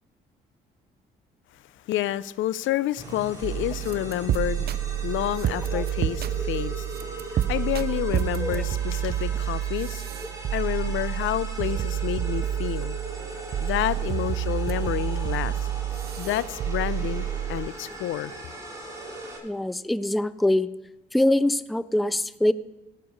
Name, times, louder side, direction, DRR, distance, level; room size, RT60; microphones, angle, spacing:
voice 1, 1.9-4.7 5.0-10.0 10.5-13.0 13.6-15.6 16.2-18.3, left 14 dB, 75° left, 0.4 m, -29 dB
sound 1, 3.0-19.4, right 1 dB, 15° right, 3.1 m, -40 dB
sound 2, 3.4-17.7, right 11 dB, 55° right, 0.5 m, -29 dB
voice 2, 19.4-20.7 21.1-22.5, left 1 dB, ahead, 0.3 m, -23 dB
17.0 x 6.7 x 5.2 m
cardioid pair, 90°, 20 cm